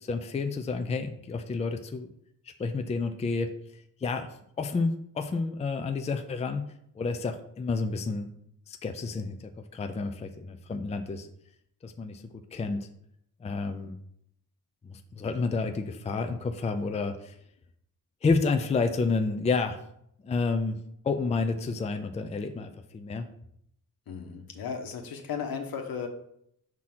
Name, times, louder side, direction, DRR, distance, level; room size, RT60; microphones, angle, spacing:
voice 1, 0.0-2.1 2.6-3.5 4.0-4.3 4.6-6.6 6.9-8.3 8.7-9.4 9.7-11.3 11.8-12.2 12.5-12.9 13.4-14.0 14.8-17.4 18.2-19.8 20.2-20.8 21.0-23.3, left 4 dB, 20° left, 7 dB, 0.4 m, -30 dB
voice 2, 24.1-26.1, left 6 dB, 80° left, 4 dB, 1.2 m, -35 dB
5.9 x 3.7 x 6.0 m, 0.73 s
wide cardioid pair, 165°, 35 cm